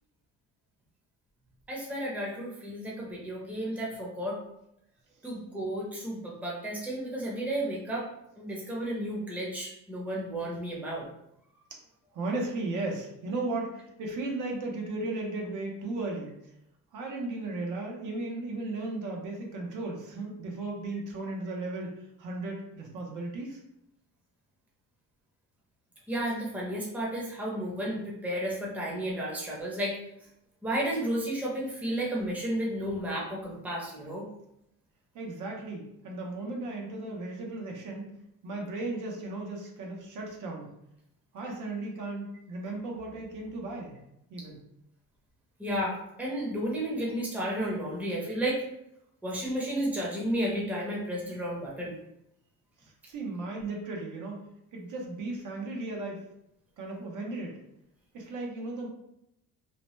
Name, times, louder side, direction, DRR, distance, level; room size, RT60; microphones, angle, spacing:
voice 1, 1.7-4.4 5.2-8.1 8.4-11.1 26.1-30.0 30.6-34.3 45.6-48.6 49.2-51.9, right 1 dB, 5° right, -4 dB, 0.7 m, -32 dB
voice 2, 12.1-16.3 16.9-21.9 22.2-23.6 35.1-38.1 38.4-40.7 41.3-44.0 44.3-44.6 53.1-54.4 54.7-56.2 56.8-57.6 58.1-58.9, right 2 dB, 65° right, 0 dB, 0.8 m, -35 dB
2.8 x 2.1 x 3.0 m, 0.79 s
cardioid pair, 130°, 33 cm